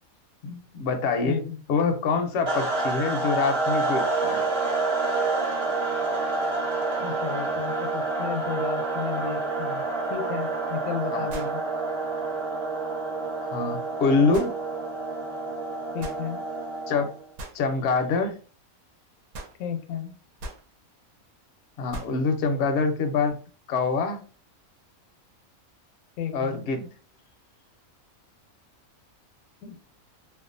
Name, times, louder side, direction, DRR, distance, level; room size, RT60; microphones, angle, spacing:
voice 1, 0.4-1.4 1.7-4.4 11.1-11.3 13.4-14.5 16.9-17.1 17.5-18.3 21.8-23.3 23.7-24.2 26.3-26.9, left 4 dB, 65° left, 4 dB, 0.7 m, -25 dB
voice 2, 1.2-1.6 7.0-9.8 10.1-11.6 15.9-16.4 19.6-20.1 26.2-26.6 29.6-29.8, left 8 dB, 85° left, 5 dB, 1.0 m, -33 dB
sound 1, 2.5-17.2, right 3 dB, 30° right, 0.6 m, -28 dB
sound 2, 11.3-11.6 14.3-14.6 16.0-16.2 17.4-17.6 19.3-19.6 20.4-20.7 21.9-22.2, right 1 dB, 85° right, 1.1 m, -39 dB
2.5 x 2.3 x 2.4 m, 0.37 s
omnidirectional pair, 1.5 m